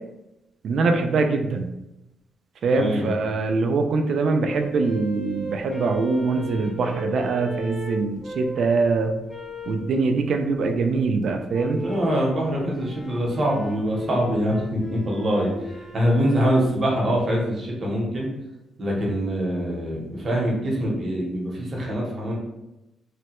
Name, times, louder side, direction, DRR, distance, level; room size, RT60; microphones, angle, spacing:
voice 1, 0.6-1.7 2.6-9.1 9.7-11.8, right 4 dB, 60° right, 5 dB, 0.3 m, -23 dB
voice 2, 2.7-3.1 11.7-18.3 18.8-22.3, equal, 35° right, -3 dB, 0.8 m, -24 dB
sound 1, 4.5-8.7 9.3-9.9 11.5-12.2 12.7-16.7, equal, 15° left, 0.4 m, -36 dB
3.2 x 2.1 x 2.9 m, 0.93 s
cardioid pair, 155°, 0 cm